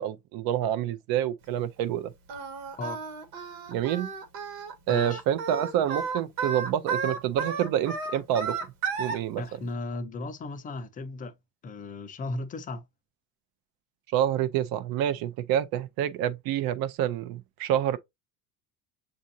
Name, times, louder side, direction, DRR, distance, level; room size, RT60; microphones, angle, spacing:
voice 1, 0.0-2.1 3.7-4.1 4.9-8.6 9.0-9.4 14.1-18.0, right 11 dB, 55° right, 0.6 m, -27 dB
Singing, 2.3-9.2, right 5 dB, 90° right, 1.3 m, -33 dB
voice 2, 4.9-5.2 9.4-11.3 11.6-12.8, left 3 dB, 20° left, 0.4 m, -36 dB
7.3 x 2.6 x 2.6 m
cardioid pair, 150°, 42 cm